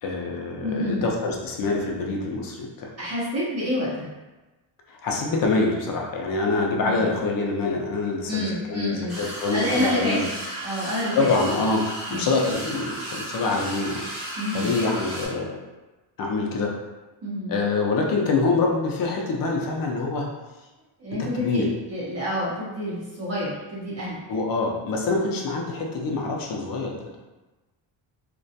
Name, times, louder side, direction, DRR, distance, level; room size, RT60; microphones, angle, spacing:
voice 1, 0.0-2.9 4.9-10.3 11.2-11.8 12.1-14.0 14.5-15.6 16.2-16.7 17.5-20.3 21.3-21.7 24.3-27.2, left 3 dB, 45° left, 0 dB, 0.5 m, -25 dB
voice 2, 0.6-1.1 3.0-4.1 6.8-7.1 8.3-9.2 9.5-10.2 10.6-11.3 12.1-12.3 14.4-14.7 17.2-17.5 21.0-24.2, left 1 dB, 30° right, -7 dB, 0.6 m, -28 dB
sound 1, 9.1-15.3, right 1 dB, ahead, 0.7 m, -34 dB
2.3 x 2.2 x 2.6 m, 1.1 s
cardioid pair, 155°, 48 cm